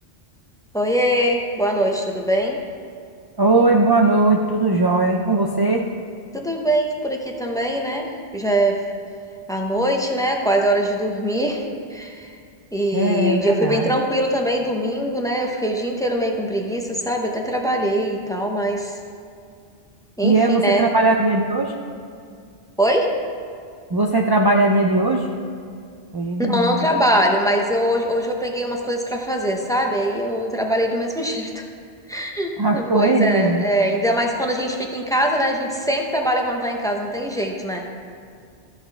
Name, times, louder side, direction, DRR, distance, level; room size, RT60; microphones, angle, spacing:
voice 1, 0.7-2.6 6.3-8.8 9.5-11.6 11.9-12.3 12.7-18.9 20.2-20.9 22.8-23.1 26.4-31.6 32.1-37.8, equal, 5° left, 1 dB, 0.7 m, -22 dB
voice 2, 3.4-5.8 12.9-13.9 20.2-21.7 23.9-25.3 26.1-26.9 32.6-33.6, right 2 dB, 40° right, 0 dB, 0.3 m, -19 dB
14.0 x 8.0 x 3.4 m, 2.3 s
omnidirectional pair, 1.2 m